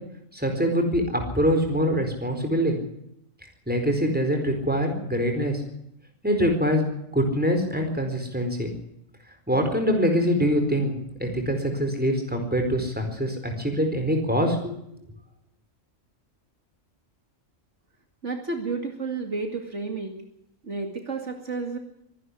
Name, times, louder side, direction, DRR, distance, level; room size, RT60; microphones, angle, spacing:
voice 1, 0.3-2.8 3.7-5.6 6.2-8.7 9.5-10.9 11.2-14.7, equal, 5° right, 4 dB, 4.4 m, -24 dB
voice 2, 18.2-20.1 20.6-21.8, right 4 dB, 60° right, 4 dB, 2.6 m, -31 dB
24.0 x 11.0 x 9.8 m, 0.79 s
omnidirectional pair, 1.4 m